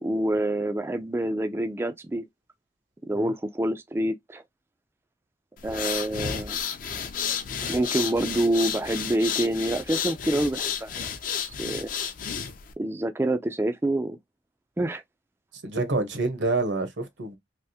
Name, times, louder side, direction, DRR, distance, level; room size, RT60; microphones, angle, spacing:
voice 1, 0.0-2.3 3.0-4.4 5.6-6.6 7.6-11.1 11.4-11.9 12.8-14.2 14.8-15.0, right 1 dB, 15° right, 0.3 m, -27 dB
sound 1, 5.6-12.7, left 7 dB, 50° left, 0.5 m, -32 dB
voice 2, 15.6-17.4, right 3 dB, 75° right, 1.0 m, -27 dB
3.4 x 2.4 x 2.7 m
head